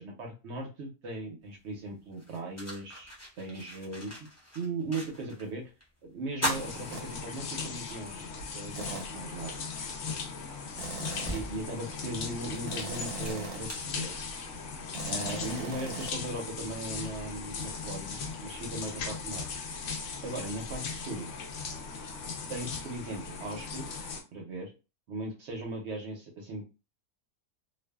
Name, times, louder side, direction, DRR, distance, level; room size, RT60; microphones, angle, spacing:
voice 1, 0.0-4.3 4.5-5.7 6.0-8.3 8.5-9.5 11.2-14.1 15.1-19.4 20.2-21.3 22.5-24.1 24.3-24.7 25.1-26.7, right 2 dB, 65° right, 1 dB, 0.7 m, -38 dB
sound 1, 1.5-1.6 2.1-5.5 5.8-5.9 6.3-7.8 8.2-8.3 9.8-9.9 10.4-14.6, equal, 25° left, 0.3 m, -39 dB
sound 2, 6.5-24.2, left 5 dB, 65° left, 0.8 m, -38 dB
sound 3, 6.9-7.1 8.8-9.2 10.8-11.6 12.7-13.8 14.9-16.2, right 4 dB, 85° right, 1.1 m, -41 dB
2.5 x 2.3 x 2.2 m, 0.30 s
omnidirectional pair, 1.6 m